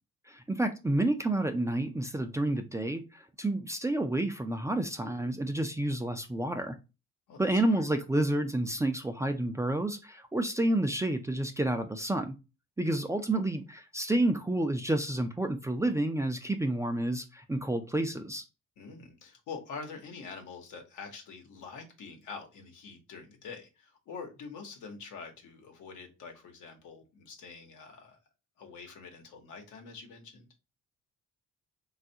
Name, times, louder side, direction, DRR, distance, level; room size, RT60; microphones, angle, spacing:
voice 1, 0.3-6.8 7.4-12.4 12.8-18.4, right 1 dB, 10° right, 0.3 m, -30 dB
voice 2, 7.3-7.9 18.8-28.2 28.6-30.5, left 5 dB, 80° left, 1.0 m, -45 dB
3.3 x 2.4 x 2.7 m
cardioid pair, 90°, 30 cm